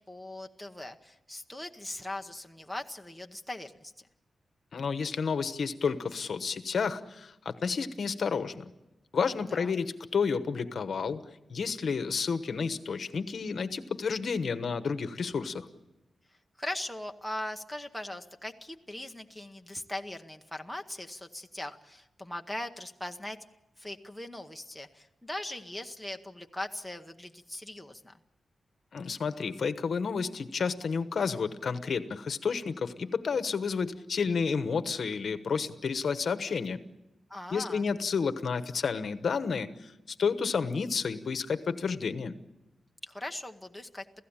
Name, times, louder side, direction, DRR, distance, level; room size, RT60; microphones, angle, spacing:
voice 1, 0.1-4.1 9.5-9.8 16.6-23.4 23.8-28.1 37.3-37.9 43.0-44.0, left 1 dB, ahead, 3 dB, 0.9 m, -40 dB
voice 2, 4.7-8.7 9.1-11.2 11.5-15.7 28.9-36.8 37.5-39.9 40.2-42.3, left 5 dB, 55° left, 10 dB, 1.1 m, -31 dB
29.0 x 16.0 x 8.8 m, 0.95 s
wide cardioid pair, 180°, 0 cm